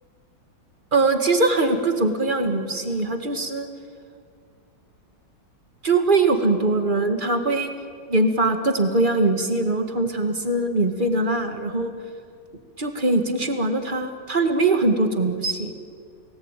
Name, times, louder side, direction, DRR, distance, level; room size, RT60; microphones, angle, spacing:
voice 1, 0.9-3.7 5.8-7.7 8.1-11.9 12.8-15.7, right 2 dB, 25° right, 7 dB, 2.1 m, -22 dB
29.5 x 18.5 x 9.2 m, 2.2 s
omnidirectional pair, 2.0 m